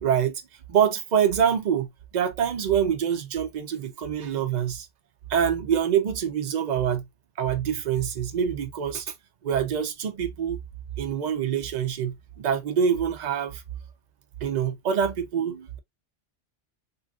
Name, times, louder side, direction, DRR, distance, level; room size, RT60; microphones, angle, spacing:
voice 1, 0.0-0.4 0.7-1.9 2.1-4.9 5.3-7.0 7.4-9.1 9.4-10.6 11.0-13.6 14.4-15.8, right 8 dB, 50° right, 0.6 m, -25 dB
3.2 x 2.7 x 2.3 m
omnidirectional pair, 1.2 m